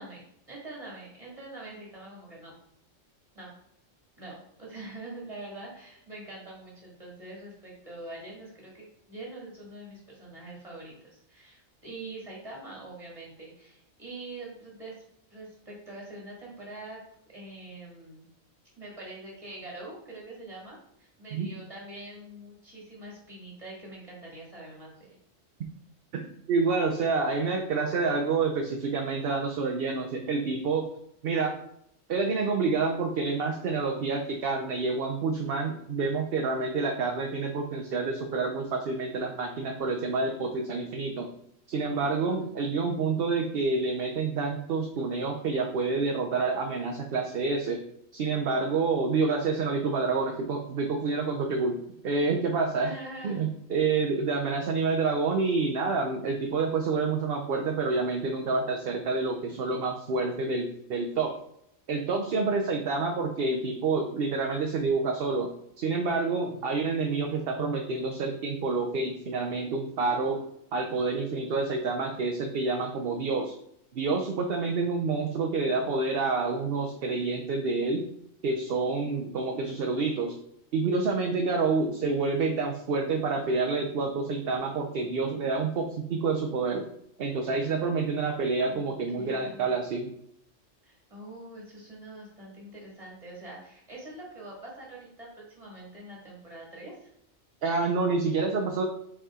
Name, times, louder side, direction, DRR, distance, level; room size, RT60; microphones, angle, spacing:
voice 1, 0.0-2.6 3.3-3.5 4.2-15.0 15.3-17.0 17.3-18.3 18.8-25.2 42.0-42.6 52.8-53.4 87.6-87.8 88.6-89.7 90.8-97.1, right 2 dB, 25° right, -4 dB, 2.2 m, -44 dB
voice 2, 26.5-30.9 31.2-31.5 32.1-41.3 41.7-47.8 48.1-51.8 52.0-52.9 53.2-61.3 61.9-65.5 65.8-70.4 70.7-73.5 73.9-78.1 78.4-80.3 80.7-86.9 87.2-90.1 97.6-98.8, right 4 dB, 55° right, 2 dB, 0.8 m, -28 dB
5.4 x 4.8 x 3.7 m, 0.74 s
omnidirectional pair, 1.4 m